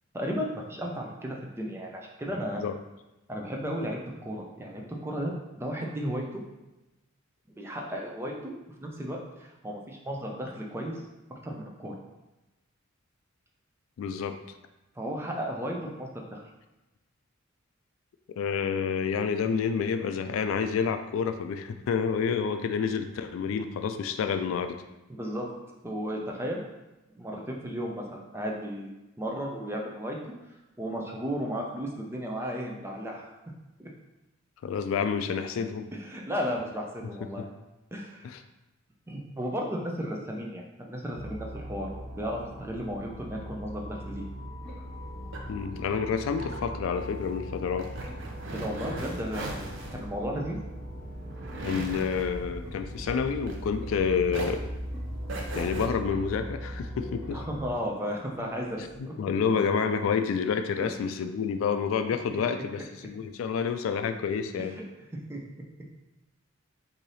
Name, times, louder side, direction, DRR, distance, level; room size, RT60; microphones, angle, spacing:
voice 1, 0.1-2.6 3.3-6.4 7.6-8.5 8.8-11.1 11.4-11.9 15.0-16.4 25.1-25.5 25.8-26.6 27.1-28.9 29.2-30.2 30.8-33.3 33.8-33.9 36.0-37.5 37.9-38.2 39.1-44.2 48.5-50.6 57.3-59.1 62.3-62.6 64.6-64.8 65.3-65.4, equal, 10° right, -1 dB, 0.5 m, -34 dB
voice 2, 14.0-14.4 18.4-24.8 34.6-35.9 38.2-38.4 45.5-47.9 49.9-50.0 51.6-54.6 55.6-57.4 59.2-64.8, left 6 dB, 75° left, 9 dB, 0.3 m, -29 dB
sound 1, 41.1-57.7, equal, 45° left, 1.0 m, -40 dB
sound 2, 43.8-58.9, equal, 5° left, 1.4 m, -47 dB
sound 3, 44.9-54.0 54.3-55.9, right 2 dB, 65° right, 0.5 m, -40 dB
3.2 x 2.7 x 4.0 m, 1.0 s
head